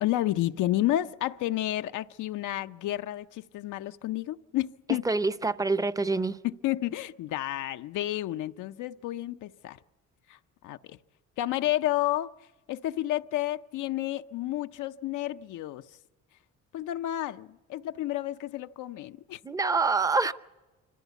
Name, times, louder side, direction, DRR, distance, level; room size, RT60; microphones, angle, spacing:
voice 1, 0.0-5.0 6.4-9.8 10.3-10.4 10.6-11.0 11.4-12.3 12.7-15.9 16.7-19.4, left 14 dB, 85° left, 0.6 m, -31 dB
voice 2, 5.0-6.4 19.4-20.3, right 3 dB, 10° right, 0.6 m, -26 dB
26.0 x 15.0 x 8.2 m
cardioid pair, 90°, 30 cm